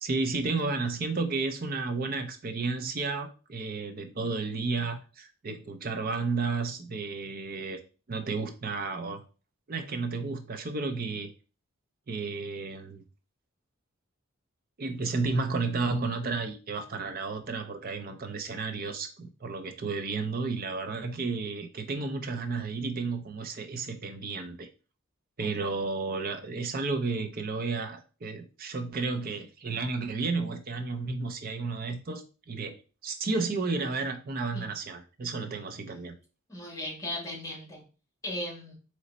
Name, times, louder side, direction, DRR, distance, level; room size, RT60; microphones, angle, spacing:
voice 1, 0.0-7.8 8.1-9.2 9.7-11.3 12.1-13.0 14.8-24.7 25.4-32.8 33.0-36.1, right 3 dB, 45° right, 7 dB, 0.5 m, -32 dB
voice 2, 36.5-37.8 38.2-38.7, left 1 dB, 15° left, -2 dB, 1.5 m, -37 dB
4.1 x 3.1 x 4.0 m, 0.35 s
head